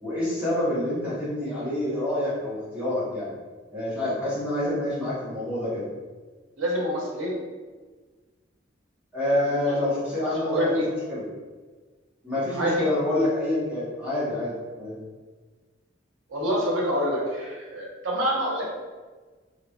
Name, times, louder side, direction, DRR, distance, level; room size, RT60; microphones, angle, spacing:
voice 1, 0.0-3.3 3.7-5.8 9.1-10.7 11.1-11.2 12.2-15.0, left 1 dB, 5° right, -12 dB, 1.2 m, -27 dB
voice 2, 6.6-7.4 9.3-9.8 10.4-10.8 12.6-12.9 16.3-18.6, equal, 90° right, -4 dB, 1.0 m, -27 dB
3.8 x 3.0 x 2.4 m, 1.3 s
head